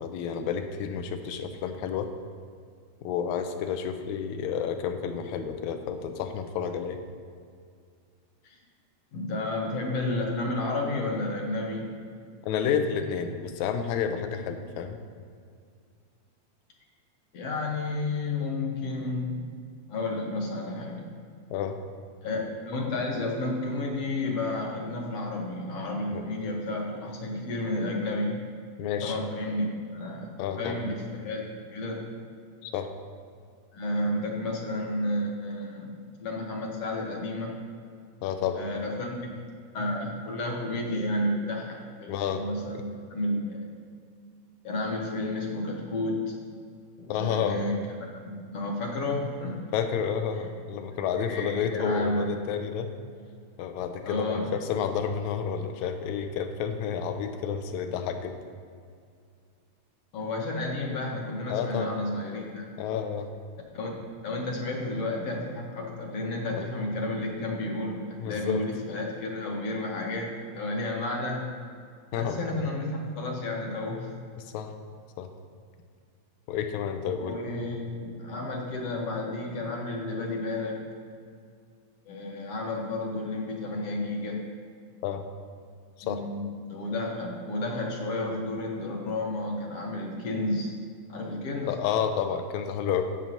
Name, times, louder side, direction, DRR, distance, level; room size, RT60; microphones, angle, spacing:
voice 1, 0.0-2.1 3.0-7.0 12.4-15.0 21.5-21.7 26.1-26.2 28.8-29.2 30.4-30.8 32.6-32.9 38.2-38.6 42.1-42.4 47.1-47.6 49.7-52.9 53.6-58.3 61.5-61.9 62.8-63.3 66.6-66.7 68.2-68.6 72.1-72.4 74.4-74.7 75.2-75.3 76.5-77.4 85.0-85.2 86.0-86.2 91.7-93.0, left 7 dB, 85° left, 7 dB, 2.0 m, -30 dB
voice 2, 9.1-11.9 17.3-19.5 19.9-21.1 22.2-28.4 29.0-29.6 29.9-30.3 30.6-31.4 31.7-32.1 33.7-36.0 36.2-37.5 38.5-39.3 39.7-43.7 44.6-46.3 47.0-47.8 48.3-49.6 51.2-52.3 54.0-54.5 60.1-62.7 63.7-63.9 64.2-71.5 72.1-74.1 77.2-80.8 82.1-84.5 86.0-90.7 91.1-91.7, left 2 dB, 65° left, 0 dB, 1.8 m, -31 dB
10.5 x 8.8 x 2.7 m, 2.2 s
omnidirectional pair, 3.4 m